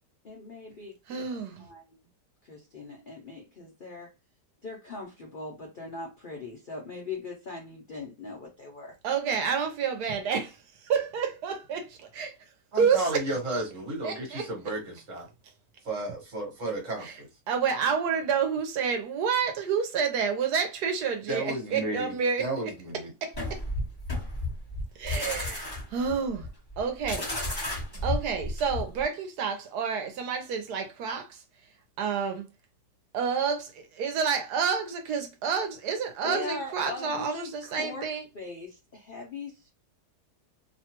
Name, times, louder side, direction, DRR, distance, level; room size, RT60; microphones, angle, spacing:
voice 1, 0.2-1.2 1.6-1.8 2.5-4.1 4.6-8.9 36.2-38.1 38.3-39.7, left 3 dB, 65° left, 0.5 m, -40 dB
voice 2, 1.1-1.6 9.0-12.4 12.8-13.2 14.0-14.8 17.0-17.2 17.5-22.7 23.2-23.6 25.0-26.5 26.8-27.3 28.0-31.4 32.0-32.5 33.1-38.3, right 6 dB, 75° right, 1.2 m, -29 dB
voice 3, 12.7-15.3 15.8-17.3 21.3-23.0, right 1 dB, 50° right, 1.4 m, -33 dB
sound 1, 23.3-29.0, left 2 dB, 15° left, 1.0 m, -33 dB
2.9 x 2.2 x 2.8 m
omnidirectional pair, 1.8 m